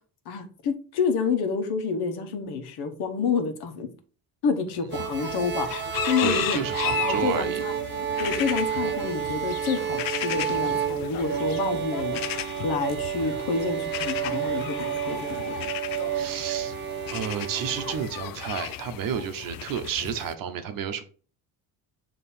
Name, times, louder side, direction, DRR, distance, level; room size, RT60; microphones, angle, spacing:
voice 1, 0.2-3.9 4.4-6.6 7.0-7.7 8.2-12.2 12.6-15.7, left 5 dB, 80° left, 6 dB, 1.2 m, -28 dB
sound 1, 4.9-20.3, left 14 dB, 65° left, 0.5 m, -35 dB
sound 2, 4.9-18.1, right 9 dB, 30° right, 0.5 m, -30 dB
voice 2, 6.2-7.6 16.1-16.7 17.1-21.0, right 8 dB, 60° right, 9 dB, 0.8 m, -31 dB
7.3 x 3.0 x 4.3 m, 0.40 s
cardioid pair, 150°, 38 cm